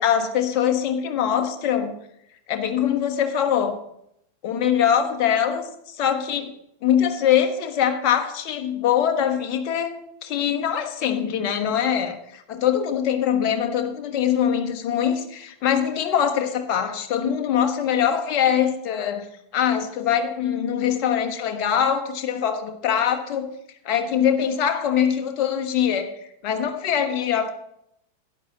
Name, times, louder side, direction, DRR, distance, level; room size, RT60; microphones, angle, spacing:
voice 1, 0.0-1.9 2.5-3.8 4.4-5.6 6.0-6.5 6.8-9.9 10.2-19.2 19.5-23.5 23.8-26.1 26.4-27.5, left 9 dB, 40° left, 5 dB, 1.3 m, -23 dB
12.0 x 9.6 x 4.0 m, 0.75 s
figure-of-eight pair, 90°, 0 cm